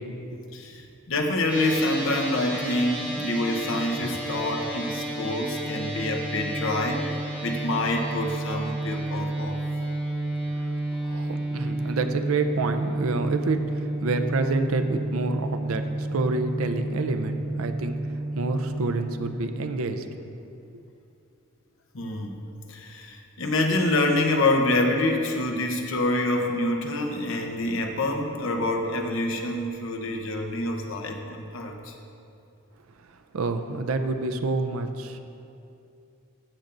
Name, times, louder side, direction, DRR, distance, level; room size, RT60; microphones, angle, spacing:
voice 1, 0.0-0.4 11.0-18.0 18.3-20.0 33.3-35.2, right 3 dB, 75° right, 7 dB, 0.5 m, -28 dB
voice 2, 0.5-9.6 21.9-22.4 22.7-31.9, left 2 dB, 65° left, 3 dB, 0.8 m, -26 dB
sound 1, 1.5-19.0, right 1 dB, 5° right, 1.6 m, -31 dB
13.0 x 6.7 x 2.6 m, 2.6 s
head